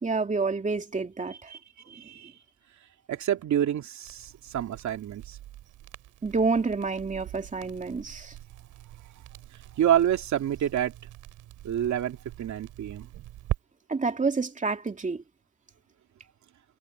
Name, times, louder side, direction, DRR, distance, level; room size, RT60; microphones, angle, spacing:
voice 1, 0.0-1.5 6.2-8.3 13.9-15.2, right 4 dB, 25° right, 2.7 m, -28 dB
voice 2, 1.9-2.3 3.1-5.4 9.8-10.9 11.6-13.1, right 10 dB, 70° right, 2.8 m, -28 dB
Crackle, 4.0-13.6, right 14 dB, 90° right, 3.1 m, -42 dB
cardioid pair, 90°, 30 cm